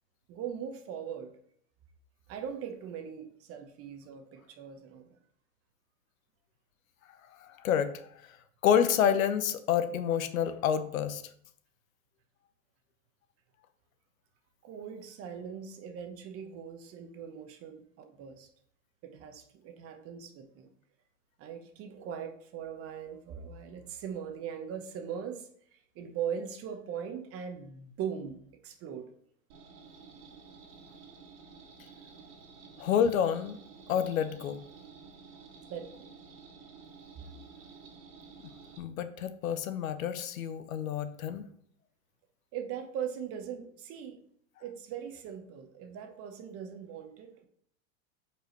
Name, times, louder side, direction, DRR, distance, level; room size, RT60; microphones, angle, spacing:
voice 1, 0.3-1.3 2.3-5.2 14.6-18.5 19.0-20.7 21.4-29.1 35.7-36.1 42.5-44.2 44.6-47.5, right 8 dB, 35° right, 6 dB, 1.1 m, -40 dB
voice 2, 7.4-7.9 8.6-11.2 32.8-33.6 33.9-34.6 38.8-41.4, left 8 dB, 75° left, 11 dB, 0.9 m, -28 dB
sound 1, 29.5-38.8, right 5 dB, 50° right, 1.9 m, -52 dB
8.0 x 4.8 x 3.1 m, 0.63 s
hypercardioid pair, 120°, 41 cm